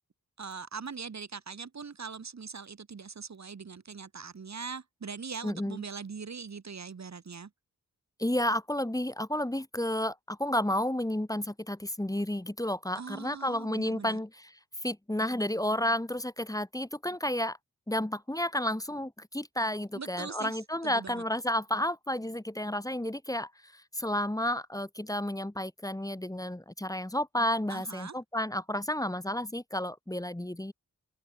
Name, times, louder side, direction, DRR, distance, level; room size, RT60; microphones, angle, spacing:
voice 1, 0.4-7.5 13.0-14.2 19.9-21.2 27.7-28.1, right 5 dB, 55° right, 1.2 m, -41 dB
voice 2, 5.4-5.8 8.2-14.5 14.8-17.6 17.9-30.7, left 1 dB, 10° left, 1.4 m, -31 dB
open air
wide cardioid pair, 90°, 32 cm